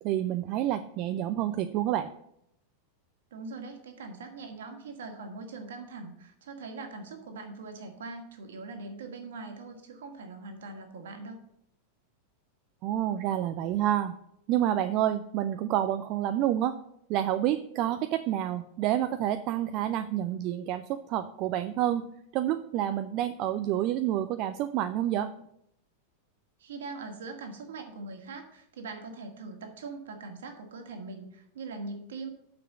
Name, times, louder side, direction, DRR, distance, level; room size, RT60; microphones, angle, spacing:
voice 1, 0.0-2.1 12.8-14.1 14.5-16.7 17.1-22.1 22.3-25.3, right 12 dB, 40° right, 9 dB, 0.5 m, -28 dB
voice 2, 3.3-11.4 26.6-32.3, right 3 dB, 60° right, 4 dB, 1.9 m, -42 dB
6.8 x 6.1 x 7.3 m, 0.74 s
figure-of-eight pair, 90°, 0 cm